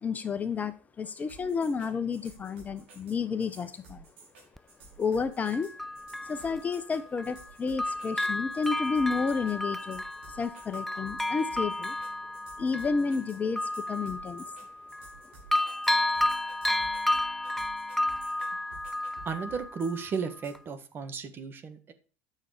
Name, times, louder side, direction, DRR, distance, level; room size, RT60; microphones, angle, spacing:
voice 1, 0.0-4.0 5.0-5.7 6.2-10.0 10.3-12.0 12.6-14.5, left 5 dB, 25° left, 12 dB, 0.8 m, -31 dB
sound 1, 1.2-20.5, right 3 dB, 90° right, 5.6 m, -53 dB
Bell, 4.6-4.7 5.5-7.5 7.8-15.2 15.5-20.1 20.6-20.7, left 1 dB, 5° left, 0.4 m, -32 dB
voice 2, 19.2-21.9, right 5 dB, 35° right, 9 dB, 1.6 m, -34 dB
9.4 x 6.9 x 5.0 m, 0.38 s
supercardioid pair, 100°, 6 cm